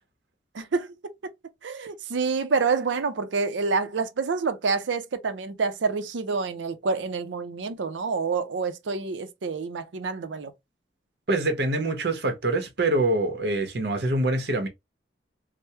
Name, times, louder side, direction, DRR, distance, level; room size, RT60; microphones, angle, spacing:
voice 1, 0.5-1.3 1.6-10.5, right 4 dB, 90° right, 0.5 m, -28 dB
voice 2, 11.3-14.7, right 2 dB, 60° right, 0.9 m, -25 dB
3.4 x 2.1 x 2.8 m
head